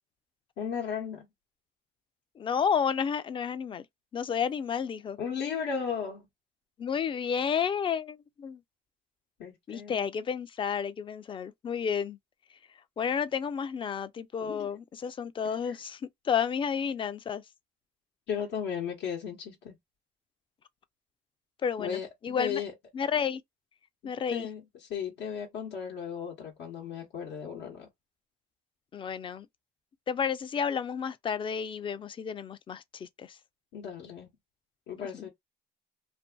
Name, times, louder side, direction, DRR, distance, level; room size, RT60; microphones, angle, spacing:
voice 1, 0.6-1.3 5.2-6.3 9.4-10.1 14.4-14.7 15.4-15.8 18.3-19.8 21.8-22.1 22.4-22.7 24.3-27.9 33.7-34.3 34.9-35.3, left 7 dB, 80° left, 0.9 m, -35 dB
voice 2, 2.4-3.8 4.1-5.2 6.8-8.6 9.7-12.2 13.0-16.0 16.3-17.4 21.6-22.6 22.9-23.4 24.0-24.5 28.9-29.5 30.1-33.3, left 7 dB, 30° left, 0.4 m, -31 dB
2.6 x 2.5 x 2.2 m
cardioid pair, 110°, 17 cm